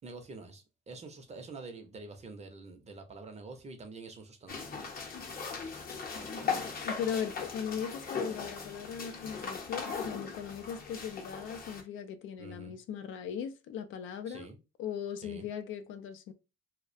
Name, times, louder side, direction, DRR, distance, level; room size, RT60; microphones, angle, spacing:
voice 1, 0.0-4.7 12.4-12.7 14.3-14.6 15.2-15.5, right 3 dB, 35° right, 0.6 m, -47 dB
sound 1, 4.5-11.8, left 5 dB, 50° left, 0.7 m, -38 dB
voice 2, 6.8-14.5 14.8-16.3, left 8 dB, 80° left, 0.4 m, -38 dB
2.3 x 2.1 x 2.5 m
cardioid pair, 90°, 20 cm